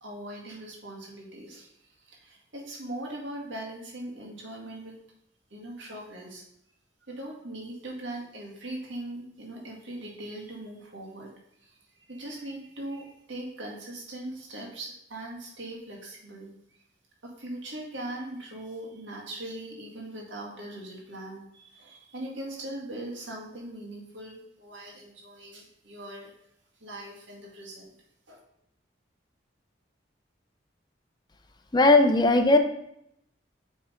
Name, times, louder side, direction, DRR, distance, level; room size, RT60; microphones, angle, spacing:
voice 1, 0.0-5.0 5.5-6.4 7.0-11.3 11.6-16.8 17.2-26.3 26.8-27.9 28.3-28.4, right 1 dB, 90° right, -2 dB, 1.9 m, -40 dB
voice 2, 31.7-32.6, left 2 dB, 25° left, 7 dB, 0.5 m, -18 dB
7.0 x 3.7 x 5.0 m, 0.75 s
head